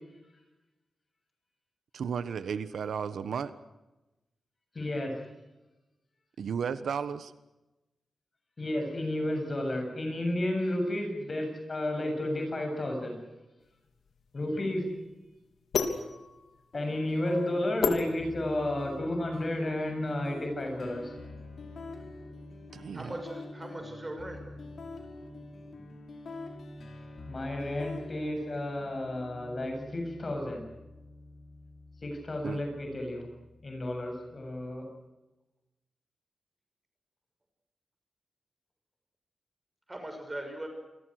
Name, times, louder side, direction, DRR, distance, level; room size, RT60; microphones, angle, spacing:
voice 1, 1.9-3.5 6.4-7.3 22.7-23.2 32.4-32.6, right 7 dB, 75° right, 12 dB, 1.2 m, -34 dB
voice 2, 4.7-5.2 8.6-13.2 14.3-14.9 16.7-21.1 27.3-30.6 32.0-33.3 33.6-34.9, left 1 dB, 30° left, 4 dB, 7.7 m, -32 dB
sound 1, 13.7-18.9, left 5 dB, 85° left, 3.7 m, -34 dB
sound 2, 16.7-34.7, left 2 dB, 55° left, 5.4 m, -46 dB
voice 3, 22.9-24.4 39.9-40.7, right 1 dB, 15° right, 4 dB, 6.4 m, -39 dB
29.0 x 22.5 x 6.6 m, 1.0 s
wide cardioid pair, 180°, 0 cm